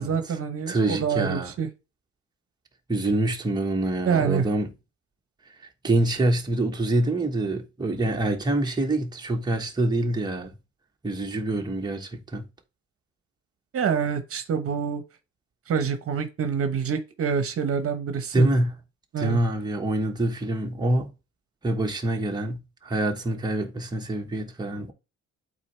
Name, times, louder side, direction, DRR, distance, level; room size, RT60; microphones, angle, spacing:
voice 1, 0.0-1.7 4.1-4.5 13.7-15.0 15.7-18.5 19.1-19.4, right 7 dB, 50° right, 1.0 m, -26 dB
voice 2, 0.7-1.5 2.9-4.7 5.8-10.5 11.0-12.4 18.3-18.7 19.2-21.1 21.6-24.9, right 1 dB, 15° right, 1.2 m, -25 dB
8.3 x 4.1 x 3.3 m
cardioid pair, 125°, 29 cm